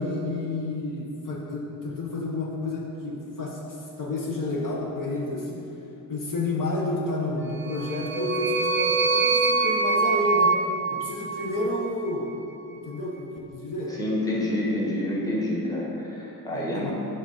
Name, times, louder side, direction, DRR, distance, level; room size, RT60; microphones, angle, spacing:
voice 1, 0.0-5.6 6.1-10.6 10.9-12.3 12.8-13.9 16.5-16.9, left 2 dB, 55° left, -2 dB, 1.0 m, -30 dB
sound 1, 7.6-12.0, right 4 dB, 35° right, 0.5 m, -24 dB
voice 2, 13.9-16.9, left 1 dB, 10° left, -5 dB, 1.4 m, -28 dB
7.8 x 3.9 x 6.5 m, 2.8 s
wide cardioid pair, 145°, 38 cm